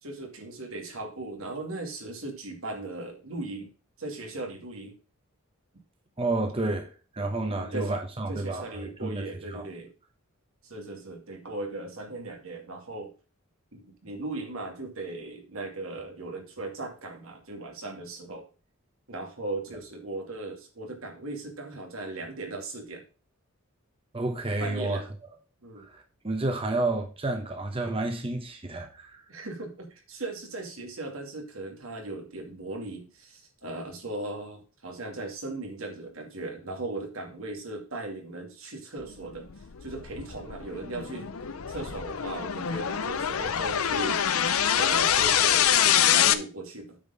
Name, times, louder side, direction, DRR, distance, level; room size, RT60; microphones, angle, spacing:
voice 1, 0.0-3.7 4.0-4.9 7.2-7.9 8.3-9.9 10.6-13.1 13.7-18.5 19.1-23.0 24.6-25.1 25.6-25.9 29.3-39.5 39.8-41.3 41.7-47.0, right 2 dB, 80° right, 2.2 m, -38 dB
voice 2, 6.2-6.9 7.1-9.6 24.1-25.0 25.8-29.2, right 2 dB, 25° right, 1.1 m, -30 dB
sound 1, 39.4-46.3, left 9 dB, 90° left, 0.6 m, -25 dB
8.8 x 4.5 x 5.4 m
head